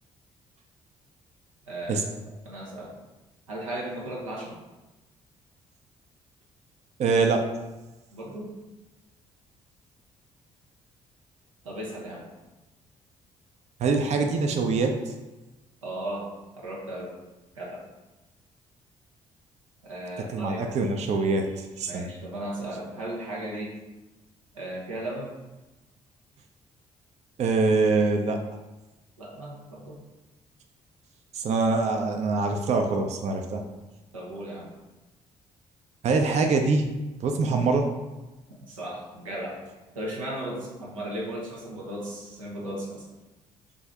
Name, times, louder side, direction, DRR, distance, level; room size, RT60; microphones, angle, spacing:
voice 1, 1.7-2.0 2.4-2.9 3.5-4.5 8.1-8.5 11.6-12.3 15.8-16.3 16.6-17.1 17.5-17.8 19.8-20.6 21.9-23.7 24.5-25.3 29.2-30.0 34.1-34.7 38.6-39.6 39.9-43.0, right 1 dB, 90° right, -3 dB, 0.6 m, -36 dB
voice 2, 7.0-7.5 13.8-15.1 20.3-22.1 27.4-28.4 31.3-33.7 36.0-36.9 37.2-37.9, right 3 dB, 45° right, 4 dB, 0.4 m, -24 dB
3.5 x 2.5 x 3.4 m, 1.1 s
figure-of-eight pair, 45°, 17 cm